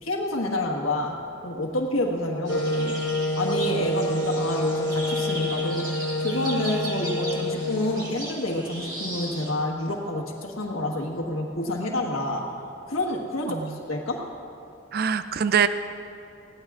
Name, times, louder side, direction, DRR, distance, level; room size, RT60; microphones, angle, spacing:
voice 1, 0.0-1.2 1.4-3.0 3.4-12.5 12.9-14.3, left 1 dB, 90° left, -2 dB, 1.5 m, -28 dB
Wind instrument woodwind instrument, 2.5-8.2, equal, 65° left, 1.0 m, -28 dB
sound 1, 2.5-9.5, right 1 dB, 20° right, 1.4 m, -37 dB
voice 2, 14.9-15.7, right 7 dB, 50° right, 12 dB, 0.3 m, -23 dB
20.5 x 16.5 x 2.4 m, 2.6 s
head